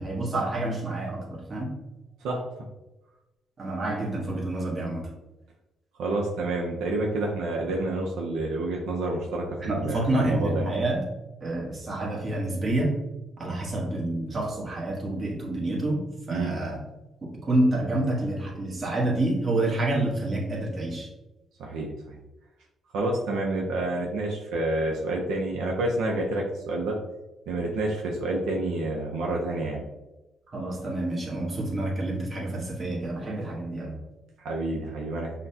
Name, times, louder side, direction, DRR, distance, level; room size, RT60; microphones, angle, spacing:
voice 1, 0.0-1.7 3.6-5.0 9.6-11.0 11.4-13.0 13.4-16.8 17.2-21.1 30.5-34.0, right 2 dB, 35° right, -2 dB, 1.2 m, -28 dB
voice 2, 6.0-10.7 16.3-16.5 21.6-22.2 22.9-27.0 27.5-29.9 34.4-35.3, right 2 dB, 85° right, -1 dB, 0.6 m, -28 dB
5.6 x 2.2 x 2.7 m, 1.0 s
cardioid pair, 90°, 0 cm